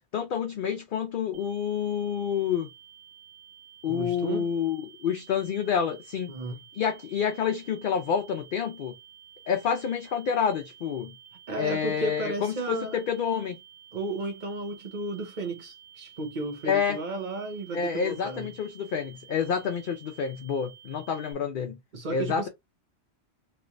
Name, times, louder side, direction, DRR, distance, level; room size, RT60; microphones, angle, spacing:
voice 1, 0.1-2.7 3.8-6.3 6.8-8.9 9.5-11.1 11.6-13.6 16.7-17.0 17.7-21.8 22.1-22.5, left 7 dB, 60° left, 0.6 m, -28 dB
sound 1, 1.3-21.3, right 9 dB, 65° right, 1.1 m, -52 dB
voice 2, 3.9-4.5 6.3-6.6 11.5-13.0 13.9-18.5 21.9-22.5, right 2 dB, 45° right, 1.1 m, -33 dB
3.2 x 3.0 x 2.5 m
omnidirectional pair, 1.1 m